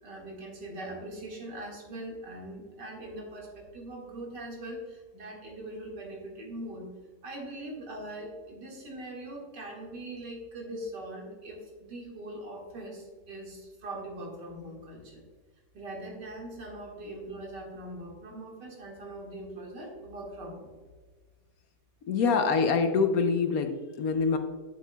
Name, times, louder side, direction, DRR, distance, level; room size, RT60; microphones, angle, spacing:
voice 1, 0.0-6.9 7.2-15.2 15.7-20.7 22.1-22.5, right 1 dB, 90° right, -1 dB, 2.5 m, -41 dB
voice 2, 22.1-24.4, left 5 dB, 65° left, 7 dB, 1.0 m, -25 dB
9.1 x 7.4 x 2.2 m, 1.4 s
omnidirectional pair, 1.8 m